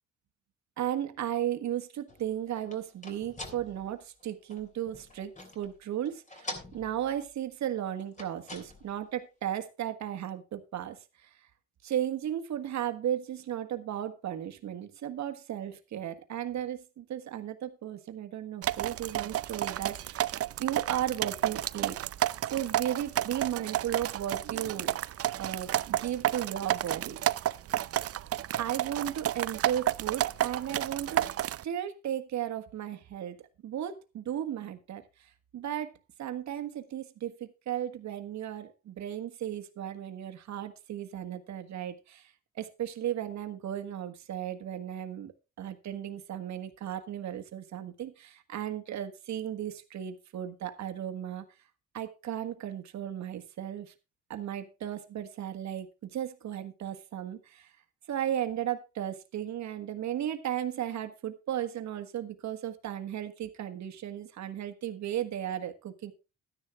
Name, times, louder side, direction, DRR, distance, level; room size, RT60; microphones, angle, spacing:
voice 1, 0.8-11.3 11.8-20.3 20.6-25.0 25.3-27.4 28.6-31.3 31.6-35.9 36.2-51.4 51.9-53.9 54.3-57.7 58.1-66.1, right 10 dB, 65° right, 8 dB, 1.6 m, -35 dB
sound 1, 2.1-5.8 6.1-7.3 8.0-9.0, left 2 dB, 25° left, 3.1 m, -45 dB
sound 2, 18.6-31.6, right 12 dB, 50° right, 0.5 m, -31 dB
12.5 x 10.0 x 3.6 m, 0.28 s
cardioid pair, 90°, 30 cm